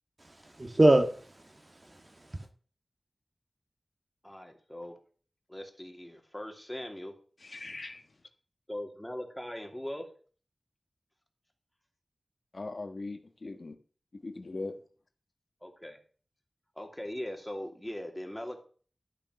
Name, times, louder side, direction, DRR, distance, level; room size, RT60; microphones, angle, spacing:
voice 1, 0.2-2.5, right 1 dB, 40° right, 2.1 m, -26 dB
voice 2, 4.2-4.9 5.5-7.1 8.7-10.0 15.6-16.0 16.8-18.6, left 1 dB, 10° left, 2.8 m, -40 dB
voice 3, 7.4-8.0 12.5-13.8 14.1-14.8, left 3 dB, 65° left, 1.4 m, -40 dB
12.0 x 7.1 x 6.4 m
wide cardioid pair, 55°, 0 cm